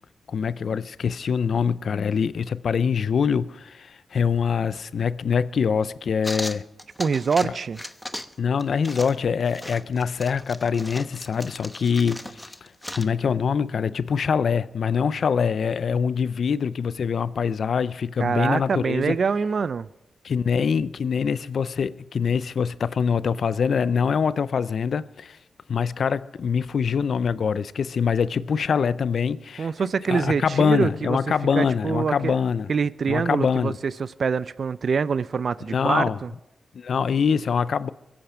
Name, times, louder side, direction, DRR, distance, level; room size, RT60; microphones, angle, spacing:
voice 1, 0.3-6.6 8.4-19.1 20.2-25.4 25.7-29.7 30.1-32.7 33.1-33.8 35.7-36.2 36.7-37.9, left 6 dB, 70° left, 0.5 m, -24 dB
sound 1, 6.2-7.5 7.7-8.3 8.6-13.1, left 1 dB, 10° left, 0.9 m, -37 dB
voice 2, 7.0-7.8 18.2-19.9 29.6-31.2 31.5-32.4 32.7-36.3, right 5 dB, 65° right, 0.4 m, -25 dB
22.5 x 8.7 x 4.9 m
cardioid pair, 65°, 0 cm